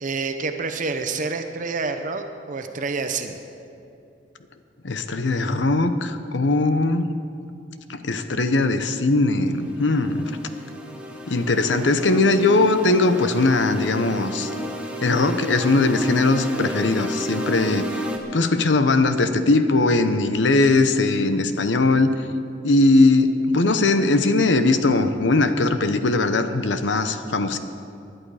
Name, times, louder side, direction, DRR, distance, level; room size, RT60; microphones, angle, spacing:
voice 1, 0.0-3.4, right 4 dB, 45° right, 7 dB, 0.8 m, -28 dB
voice 2, 4.8-7.1 7.9-10.3 11.3-14.5 15.0-17.9 18.3-22.2 22.6-27.6, left 2 dB, 85° left, 9 dB, 0.9 m, -20 dB
sound 1, 9.5-18.2, equal, 5° right, 1.3 m, -32 dB
20.0 x 11.5 x 4.9 m, 2.6 s
head